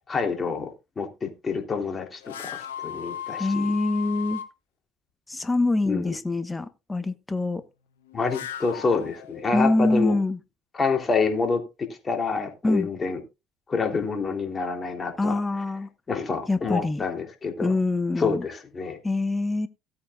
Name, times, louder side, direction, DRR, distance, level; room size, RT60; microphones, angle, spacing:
voice 1, 0.1-3.6 5.8-6.1 8.1-10.1 10.7-13.2 13.7-15.4 16.1-17.7 18.2-19.0, left 4 dB, 30° left, 3.3 m, -27 dB
sound 1, 2.2-4.5 8.0-9.8, left 9 dB, 90° left, 1.0 m, -36 dB
voice 2, 3.4-4.4 5.3-7.6 9.5-10.4 12.6-12.9 15.2-15.9 16.5-17.0 17.6-18.4 19.0-19.7, left 2 dB, 15° left, 1.1 m, -24 dB
16.5 x 8.7 x 2.4 m
hypercardioid pair, 65°, 0 cm